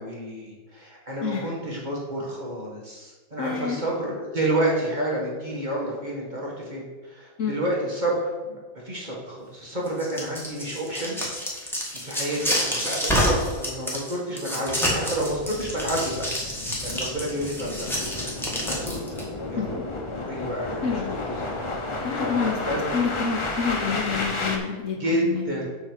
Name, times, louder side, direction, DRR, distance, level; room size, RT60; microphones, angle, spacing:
voice 1, 0.0-8.3 8.8-11.2 12.0-16.1 16.5-17.9 18.2-18.3 18.6-19.7 20.3-21.5 22.2-22.9 24.9-25.7, right 1 dB, 30° right, -4 dB, 1.8 m, -29 dB
voice 2, 3.4-3.8 7.4-7.6 19.6-19.8 20.8-21.2 22.0-25.7, left 6 dB, 60° left, 0 dB, 1.1 m, -28 dB
sound 1, 9.9-19.2, equal, ahead, 1.5 m, -28 dB
sound 2, 15.1-24.6, left 2 dB, 30° left, 0.5 m, -32 dB
7.6 x 3.8 x 6.6 m, 1.2 s
omnidirectional pair, 1.6 m